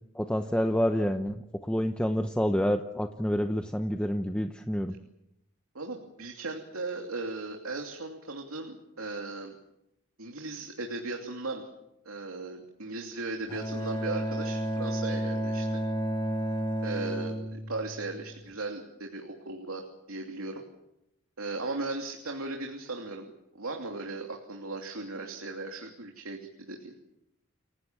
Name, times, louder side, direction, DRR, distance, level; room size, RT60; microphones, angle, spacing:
voice 1, 0.1-1.3 1.6-4.9, equal, 5° left, 6 dB, 0.8 m, -28 dB
voice 2, 5.7-9.6 10.2-11.7 12.0-15.7 16.8-20.6 21.4-26.9, right 3 dB, 90° right, 2 dB, 2.9 m, -37 dB
Bowed string instrument, 13.5-18.5, equal, 25° left, 3.8 m, -32 dB
29.5 x 18.0 x 7.5 m, 0.84 s
head